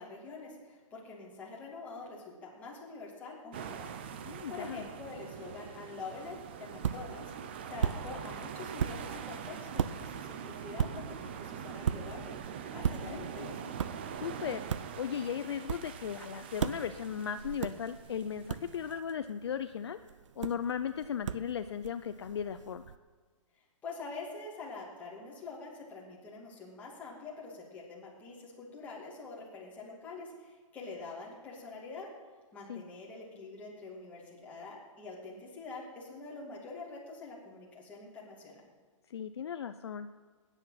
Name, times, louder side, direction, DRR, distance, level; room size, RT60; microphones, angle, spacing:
voice 1, 0.0-12.4 12.6-13.6 23.8-32.1 32.5-38.6, left 3 dB, 10° left, -5 dB, 2.5 m, -45 dB
sound 1, 3.5-19.0, right 8 dB, 20° right, 0.4 m, -44 dB
voice 2, 4.2-4.9 13.0-13.6 14.2-14.6 15.0-20.0 20.4-22.9 32.7-32.8 39.1-40.1, left 8 dB, 50° left, 10 dB, 0.6 m, -37 dB
sound 2, 6.2-23.0, right 7 dB, 65° right, 0.6 m, -39 dB
19.0 x 10.0 x 5.8 m, 1.5 s
hypercardioid pair, 175°, 17 cm